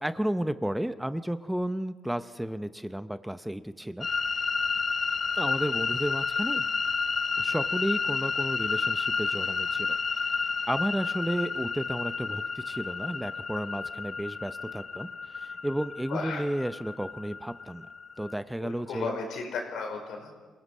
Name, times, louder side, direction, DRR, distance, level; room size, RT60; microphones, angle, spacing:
voice 1, 0.0-4.1 5.3-6.7 7.4-10.0 10.2-17.9 18.2-19.1, right 1 dB, 5° right, 12 dB, 0.6 m, -32 dB
sound 1, 4.0-18.3, left 5 dB, 40° left, 0.7 m, -31 dB
voice 2, 16.1-16.4 18.6-20.4, left 4 dB, 75° left, 3 dB, 4.8 m, -35 dB
27.0 x 17.5 x 5.5 m, 1.4 s
cardioid pair, 90°, 0 cm